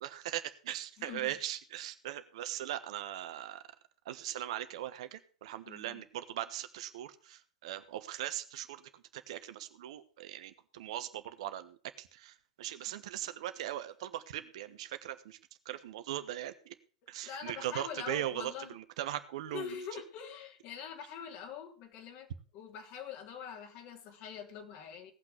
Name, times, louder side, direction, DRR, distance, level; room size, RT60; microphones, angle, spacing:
voice 1, 0.0-3.6 4.0-15.4 15.6-16.7 17.1-19.8, right 12 dB, 60° right, 11 dB, 1.3 m, -40 dB
voice 2, 1.0-1.3 5.7-6.0 17.2-18.8 19.5-25.1, left 7 dB, 45° left, 4 dB, 3.1 m, -44 dB
17.5 x 6.1 x 6.5 m, 0.40 s
hypercardioid pair, 100°, 4 cm